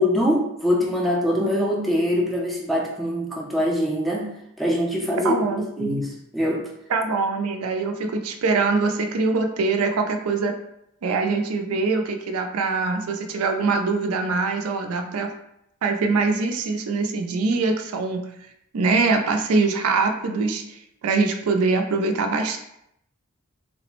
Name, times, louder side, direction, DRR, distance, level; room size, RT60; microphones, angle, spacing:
voice 1, 0.0-4.3 4.6-5.3 5.8-6.6, left 1 dB, ahead, -3 dB, 0.4 m, -23 dB
voice 2, 5.2-6.0 6.9-10.5 11.0-15.3 15.8-18.3 18.7-22.6, right 4 dB, 85° right, 4 dB, 0.4 m, -23 dB
3.2 x 2.0 x 3.0 m, 0.77 s
head